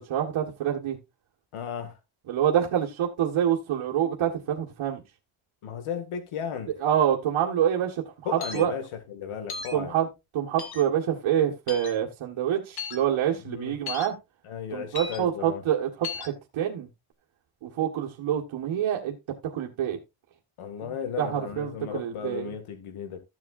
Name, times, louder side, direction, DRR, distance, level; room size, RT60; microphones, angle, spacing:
voice 1, 0.1-1.0 2.3-5.0 6.8-8.0 8.3-8.7 9.7-10.1 10.3-14.2 14.7-16.9 17.6-19.1 19.5-20.0 21.2-22.5, right 10 dB, 70° right, 1.8 m, -26 dB
voice 2, 1.5-1.9 5.6-6.7 8.2-9.9 13.5-13.8 14.4-15.6 20.6-23.2, left 7 dB, 80° left, 2.1 m, -35 dB
sound 1, 8.4-8.6 9.5-9.7 10.6-10.8 11.7-11.9 12.8-13.0 13.9-14.1 14.9-15.2 16.0-16.3, left 5 dB, 50° left, 1.7 m, -35 dB
14.5 x 7.5 x 2.6 m
wide cardioid pair, 180°, 50 cm